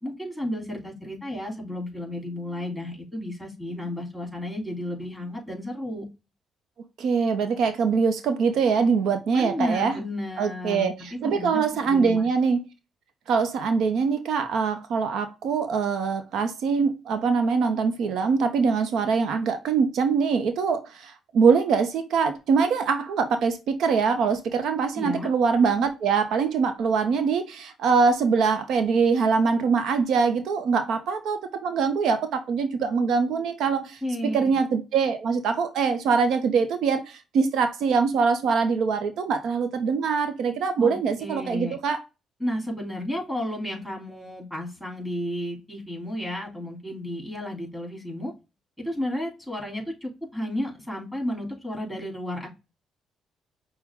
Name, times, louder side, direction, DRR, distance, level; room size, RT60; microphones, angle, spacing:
voice 1, 0.0-6.0 9.3-12.3 24.9-25.3 34.0-34.5 40.8-41.8 42.4-48.3 48.8-52.5, left 1 dB, 5° left, 2.7 m, -32 dB
voice 2, 7.0-10.0 10.4-12.6 13.3-34.0 34.3-42.0, right 5 dB, 75° right, 0.6 m, -23 dB
5.9 x 2.1 x 3.5 m
cardioid pair, 100°, 0 cm